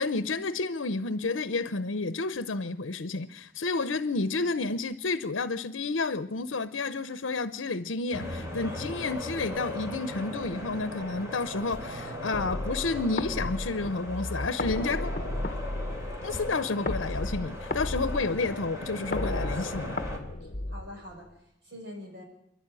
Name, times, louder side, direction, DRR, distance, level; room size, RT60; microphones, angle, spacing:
voice 1, 0.0-15.1 16.2-20.0, left 3 dB, 85° left, 0.8 m, -30 dB
sound 1, 8.1-20.2, left 1 dB, 15° right, 3.3 m, -38 dB
sound 2, 12.3-21.3, left 1 dB, 40° left, 1.1 m, -34 dB
voice 2, 20.4-22.2, left 1 dB, 60° right, 6.3 m, -45 dB
28.0 x 11.5 x 9.0 m
head